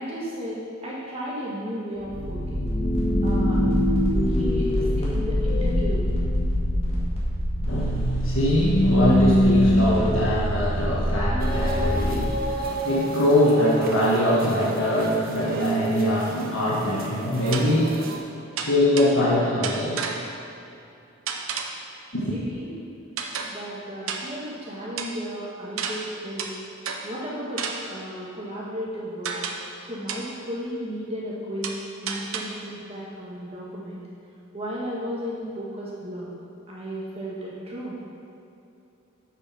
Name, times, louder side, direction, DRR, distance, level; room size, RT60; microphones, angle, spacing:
voice 1, 0.0-2.7 3.2-3.6 4.2-6.1 22.1-22.7 23.4-26.5 27.0-29.4 29.9-31.7 32.0-34.0 34.5-36.3 36.7-38.0, equal, 30° right, -6 dB, 1.5 m, -34 dB
sound 1, 2.0-12.6, equal, 30° left, 2.1 m, -23 dB
voice 2, 7.7-18.0 18.6-20.0 22.1-22.3, left 1 dB, 65° left, -6 dB, 1.6 m, -23 dB
sound 2, 11.4-18.2, right 1 dB, 45° right, 0.9 m, -32 dB
sound 3, 17.5-17.9 18.6-19.3 19.6-20.5 21.3-21.9 23.2-23.7 24.1-24.5 25.0-25.2 25.8-27.2 27.6-28.1 29.2-29.8 30.1-30.4 31.6-32.7, right 5 dB, 75° right, 0.8 m, -33 dB
7.9 x 6.1 x 5.8 m, 2.7 s
head